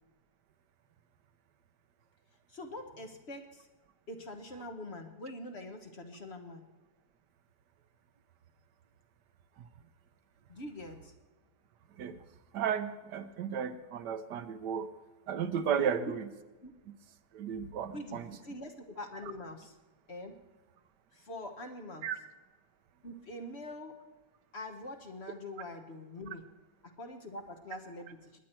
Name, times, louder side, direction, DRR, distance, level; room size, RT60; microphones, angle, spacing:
voice 1, 2.5-3.7 4.1-6.6 10.5-11.1 15.8-16.1 16.6-16.7 17.9-19.8 20.1-20.4 21.1-22.1 23.0-24.0 24.5-26.5 26.8-28.4, left 1 dB, 40° left, 5 dB, 1.3 m, -44 dB
voice 2, 12.5-14.9 15.3-16.3 17.3-18.2 22.0-22.2, right 7 dB, 75° right, 11 dB, 1.4 m, -34 dB
21.0 x 9.3 x 4.4 m, 1.2 s
omnidirectional pair, 1.8 m